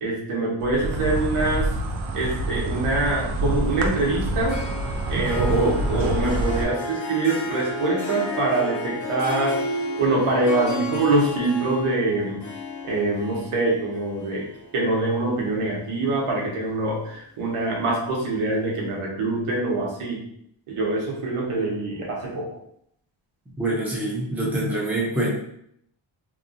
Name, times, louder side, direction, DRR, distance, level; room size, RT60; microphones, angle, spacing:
voice 1, 0.0-1.7 2.1-4.6 5.1-9.6 10.0-12.4 12.8-20.3 20.7-22.6, right 2 dB, 85° right, -3 dB, 1.0 m, -24 dB
Insect, 0.6-6.6, right 1 dB, 70° right, 0.5 m, -27 dB
Harp, 4.5-15.9, left 2 dB, 40° left, 0.6 m, -33 dB
voice 2, 23.6-25.3, right 1 dB, 5° right, -4 dB, 0.5 m, -25 dB
2.8 x 2.3 x 2.6 m, 0.71 s
wide cardioid pair, 135°, 50 cm